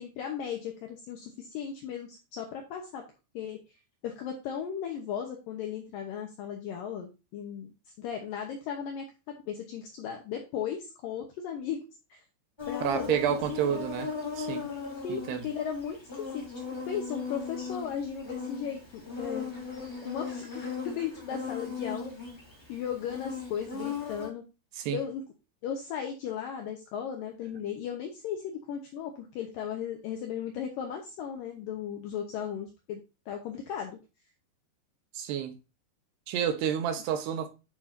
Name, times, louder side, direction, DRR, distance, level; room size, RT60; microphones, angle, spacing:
voice 1, 0.0-3.0 3.3-3.6 4.0-7.7 8.0-11.8 12.1-12.2 12.7-13.9 15.0-16.4 16.9-19.5 20.0-22.1 22.7-24.4 24.9-25.2 25.6-33.0 33.3-34.0, left 8 dB, 70° left, 2.2 m, -36 dB
Insect, 12.6-24.3, left 5 dB, 10° left, 2.2 m, -38 dB
voice 2, 12.8-14.1 14.4-14.6 15.1-15.4 24.8-25.0 35.1-35.6 36.3-37.5, right 9 dB, 75° right, 3.0 m, -29 dB
9.9 x 6.8 x 2.6 m
omnidirectional pair, 4.9 m